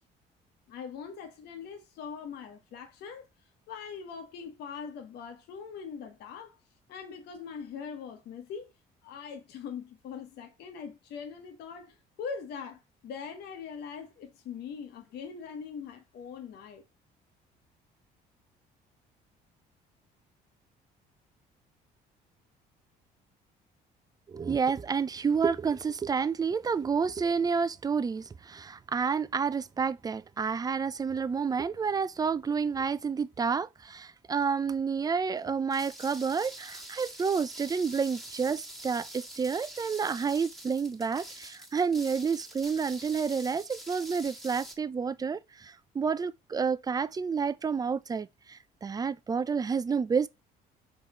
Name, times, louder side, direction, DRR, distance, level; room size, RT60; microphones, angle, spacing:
voice 1, 0.7-3.3 3.7-6.6 6.9-8.7 9.0-16.8, left 6 dB, 75° left, 1.4 m, -42 dB
voice 2, 24.3-50.3, right 5 dB, 20° right, 0.5 m, -30 dB
sound 1, 35.7-44.8, right 1 dB, ahead, 1.6 m, -45 dB
5.5 x 4.0 x 4.3 m
cardioid pair, 110°, 17 cm